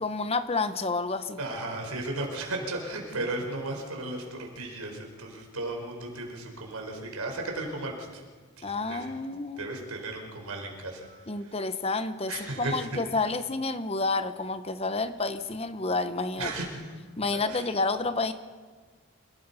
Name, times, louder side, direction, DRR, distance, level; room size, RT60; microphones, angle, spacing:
voice 1, 0.0-1.4 8.6-9.8 11.3-12.3 12.6-16.5 17.2-18.3, left 3 dB, 25° left, 11 dB, 0.9 m, -29 dB
voice 2, 1.4-8.2 8.6-9.1 9.6-11.5 12.3-12.9 16.4-16.9 17.3-17.7, right 2 dB, 85° right, 1 dB, 5.0 m, -35 dB
27.5 x 18.5 x 5.7 m, 1.5 s
head